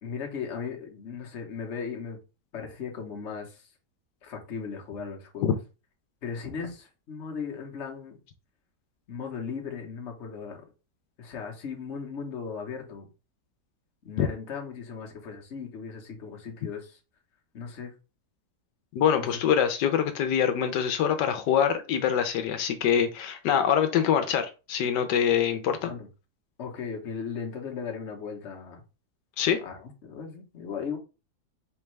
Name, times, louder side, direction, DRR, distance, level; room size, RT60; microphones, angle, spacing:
voice 1, 0.0-2.2 2.5-3.7 4.2-5.6 6.2-8.2 9.1-10.6 11.2-13.1 14.0-17.0 17.5-17.9 19.2-19.4 25.8-26.1 26.6-28.8 29.6-31.0, left 6 dB, 50° left, 1.2 m, -37 dB
voice 2, 18.9-25.9 29.4-29.6, left 8 dB, 85° left, 1.3 m, -24 dB
4.6 x 3.5 x 3.2 m
omnidirectional pair, 1.8 m